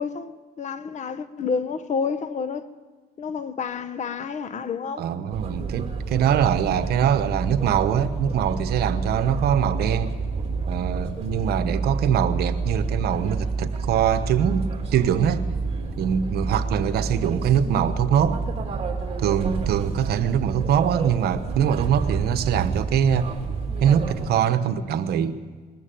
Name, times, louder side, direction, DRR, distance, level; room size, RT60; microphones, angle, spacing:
voice 1, 0.0-2.7 3.2-5.1, left 5 dB, 45° left, 1.1 m, -29 dB
voice 2, 5.0-10.1 10.7-15.5 16.0-18.4 19.2-23.3 23.8-25.4, right 9 dB, 70° right, 1.1 m, -23 dB
sound 1, 5.3-24.3, right 4 dB, 35° right, 3.2 m, -29 dB
20.5 x 14.0 x 9.1 m
cardioid pair, 110°, 17 cm